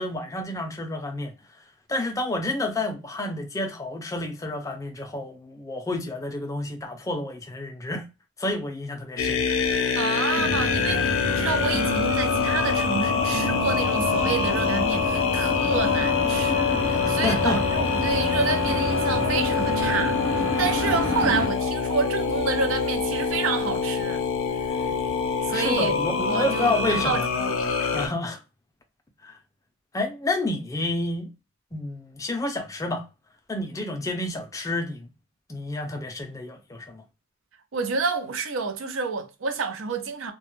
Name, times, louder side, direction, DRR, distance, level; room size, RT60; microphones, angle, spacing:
voice 1, 0.0-1.3 1.9-8.0 8.4-9.4 17.0-17.6 20.5-20.7 25.5-27.2 27.9-28.4 29.2-29.4 29.9-31.3 31.7-33.1 33.5-35.1 35.5-37.0, left 2 dB, 15° left, 0.4 m, -29 dB
sound 1, 9.2-28.1, left 6 dB, 80° left, 0.5 m, -25 dB
voice 2, 10.0-24.2 24.6-24.8 25.4-26.0 26.2-27.5 37.7-40.3, right 4 dB, 90° right, 0.5 m, -29 dB
sound 2, 10.4-21.5, equal, 50° right, 0.8 m, -30 dB
2.2 x 2.0 x 2.9 m
head